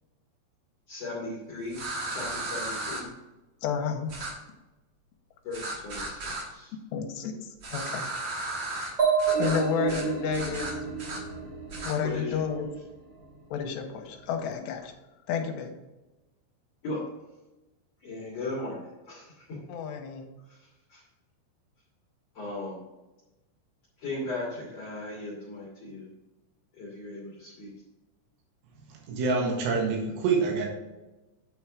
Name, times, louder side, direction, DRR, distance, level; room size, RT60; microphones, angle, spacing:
voice 1, 0.9-3.1 5.4-6.7 12.0-12.6 16.8-17.0 18.0-19.6 20.4-21.0 22.3-22.8 24.0-26.1 26.7-27.7, left 2 dB, 50° left, -6 dB, 2.2 m, -37 dB
sound 1, 1.7-3.0 4.1-4.3 5.5-6.4 7.6-8.9 9.2-9.6 9.9-10.1 10.3-11.2 11.7-11.9, right 2 dB, 90° right, 1.3 m, -35 dB
voice 2, 3.6-4.1 6.9-7.4 7.7-8.1 9.4-10.7 11.8-12.7 13.5-14.9 15.3-15.7 19.7-20.3, left 7 dB, 80° left, 4 dB, 2.9 m, -31 dB
sound 2, 9.0-12.7, right 6 dB, 20° right, 2.4 m, -29 dB
voice 3, 29.1-30.7, right 4 dB, 75° right, -1 dB, 3.7 m, -26 dB
9.3 x 4.5 x 4.7 m, 1.0 s
omnidirectional pair, 5.2 m